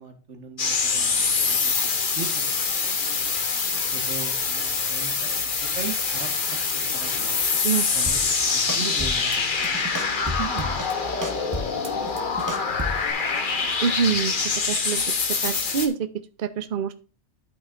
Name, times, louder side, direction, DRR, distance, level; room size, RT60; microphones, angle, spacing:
voice 1, 0.0-1.9 2.2-2.4 3.0-3.3 3.9-5.3 5.6-6.3 6.7-7.4 7.9-9.8 10.3-10.9 11.2-11.3 11.6-11.7, right 5 dB, 85° right, 6 dB, 1.7 m, -38 dB
sound 1, 0.6-15.9, left 5 dB, 50° left, 1.2 m, -25 dB
sound 2, 8.1-8.4 8.7-9.4 9.6-10.9 11.2-13.1, equal, 15° right, 1.0 m, -32 dB
voice 2, 13.8-14.3 14.7-15.0 15.4-16.1 16.4-16.9, right 7 dB, 50° right, 10 dB, 0.8 m, -25 dB
12.5 x 5.7 x 2.5 m, 0.37 s
omnidirectional pair, 1.2 m